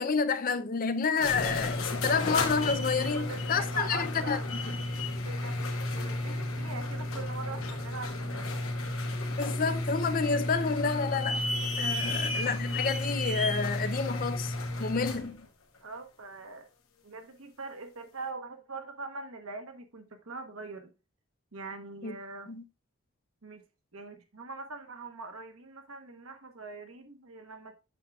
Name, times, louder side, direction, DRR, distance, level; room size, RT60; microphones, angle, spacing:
voice 1, 0.0-4.8 9.4-11.4 11.8-14.5 14.8-15.5 22.0-22.2 22.5-22.6, left 5 dB, 40° left, 0.5 m, -29 dB
sound 1, 1.0-15.3, left 2 dB, 80° left, 1.3 m, -32 dB
voice 2, 2.9-4.5 5.2-8.5 12.0-12.1 15.8-16.7 17.0-20.9 21.5-22.5 23.4-23.6 23.9-27.7, right 3 dB, 85° right, 1.3 m, -42 dB
8.3 x 6.2 x 2.3 m
head